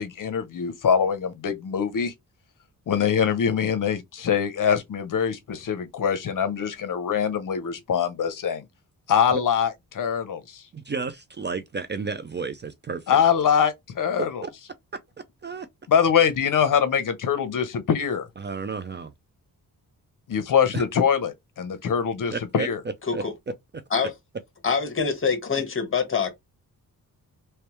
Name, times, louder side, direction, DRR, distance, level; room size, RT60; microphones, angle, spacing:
voice 1, 0.0-2.1 2.9-8.7 9.1-10.6 13.1-14.4 15.9-18.3 20.3-22.8, left 7 dB, 60° left, 0.8 m, -23 dB
voice 2, 10.7-13.2 14.4-14.5 15.4-15.7 18.4-19.1 20.7-20.8 22.3-22.7 23.1-23.2, right 4 dB, 30° right, 0.4 m, -32 dB
voice 3, 24.6-26.3, left 5 dB, 35° left, 1.3 m, -25 dB
3.3 x 3.2 x 3.0 m
wide cardioid pair, 115°, 36 cm